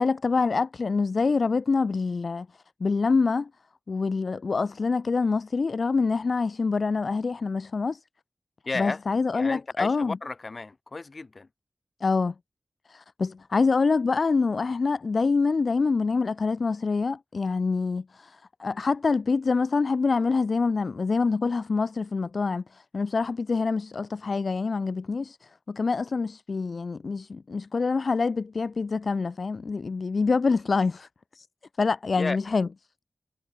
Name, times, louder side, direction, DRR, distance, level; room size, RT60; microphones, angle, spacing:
voice 1, 0.0-2.5 2.8-3.5 3.9-8.0 8.8-10.2 12.0-12.3 12.9-31.5 31.8-32.7, left 4 dB, 60° left, 3.1 m, -26 dB
voice 2, 8.6-9.0 9.3-11.5 32.2-32.5, left 3 dB, 45° left, 6.4 m, -33 dB
wide cardioid pair, 80°, 0 cm